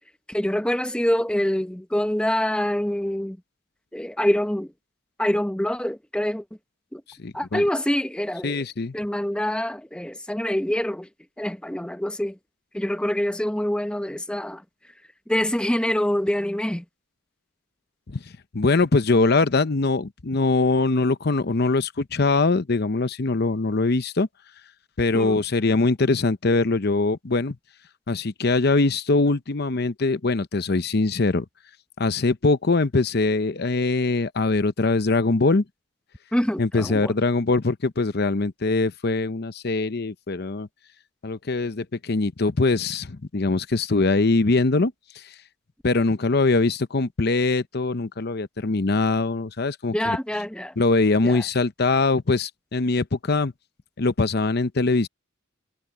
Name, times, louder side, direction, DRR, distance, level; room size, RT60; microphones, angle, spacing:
voice 1, 0.3-3.4 3.9-4.7 5.2-6.4 6.9-7.0 7.3-8.7 8.9-11.1 11.4-12.4 12.7-14.6 15.3-16.8 25.1-25.4 36.3-37.1 49.9-50.8 51.2-51.4, left 1 dB, 5° left, 0.8 m, -25 dB
voice 2, 7.2-7.6 8.4-8.9 18.1-18.2 18.5-24.3 25.0-27.6 28.1-31.4 32.0-35.6 36.6-40.7 41.2-44.9 45.8-50.2 50.8-53.5 54.0-55.1, left 3 dB, 55° left, 0.8 m, -22 dB
head